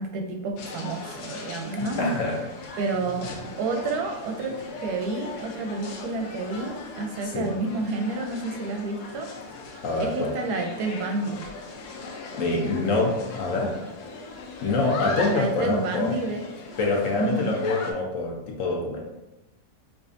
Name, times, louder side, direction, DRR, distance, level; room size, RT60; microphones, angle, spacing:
voice 1, 0.0-2.0 2.8-3.3 3.6-9.3 10.0-11.4 15.3-16.4 17.2-17.5, right 3 dB, 90° right, 3 dB, 1.2 m, -30 dB
sound 1, 0.6-17.9, left 3 dB, 90° left, 1.2 m, -39 dB
voice 2, 1.8-2.4 7.2-7.5 9.8-10.3 12.4-13.7 14.6-16.2 16.8-19.0, left 2 dB, 65° left, 0 dB, 0.9 m, -25 dB
4.8 x 2.4 x 2.5 m, 0.97 s
omnidirectional pair, 1.7 m